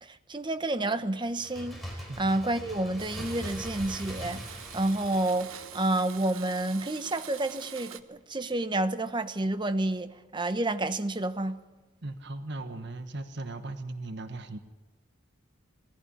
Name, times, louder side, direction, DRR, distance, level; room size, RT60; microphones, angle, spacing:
voice 1, 0.0-11.6, right 2 dB, 20° right, 1.0 m, -30 dB
Bird, 1.3-6.8 7.1-7.2, equal, ahead, 4.4 m, -42 dB
Domestic sounds home sounds, 3.0-8.0, right 9 dB, 75° right, 1.2 m, -45 dB
voice 2, 12.0-14.6, right 2 dB, 55° right, 1.3 m, -38 dB
20.0 x 15.5 x 10.0 m
head